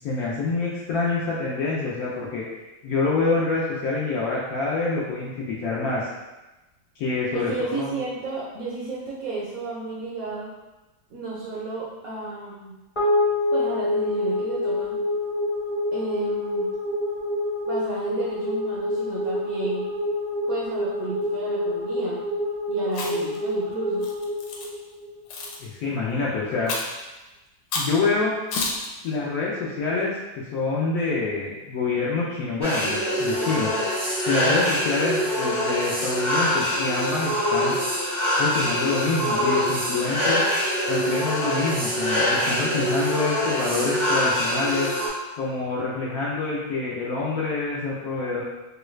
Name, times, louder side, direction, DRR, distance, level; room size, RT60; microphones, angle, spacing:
voice 1, 0.0-2.4 2.8-6.1 7.0-7.9 25.6-26.7 27.7-28.3 29.0-33.8 34.3-37.7 38.4-40.4 40.9-44.9 45.4-48.4, left 3 dB, 70° left, -6 dB, 0.9 m, -26 dB
voice 2, 7.3-10.5 11.1-12.7 13.5-15.0 15.9-16.7 17.7-19.9 20.5-22.2 22.7-24.1, right 3 dB, 65° right, -7 dB, 0.8 m, -32 dB
sound 1, 12.9-25.5, left 1 dB, 25° left, 0.7 m, -27 dB
Chewing mastication, 22.9-23.4 24.0-24.7 25.3-25.6 26.7-27.0 27.7-28.0 28.5-28.9, left 3 dB, 90° left, 1.3 m, -29 dB
sound 2, 32.6-45.1, equal, 25° right, 0.6 m, -24 dB
3.1 x 2.3 x 3.1 m, 1.1 s
omnidirectional pair, 2.0 m